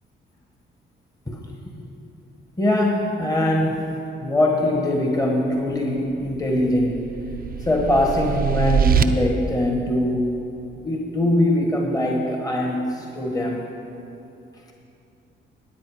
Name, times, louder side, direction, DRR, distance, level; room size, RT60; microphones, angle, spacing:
voice 1, 2.6-3.9 4.2-7.0 7.6-10.4 10.8-13.6, left 1 dB, 20° left, 0 dB, 1.4 m, -22 dB
sound 1, 6.2-9.0, right 8 dB, 50° right, 0.6 m, -23 dB
13.0 x 9.4 x 4.9 m, 2.7 s
cardioid pair, 90°, 20 cm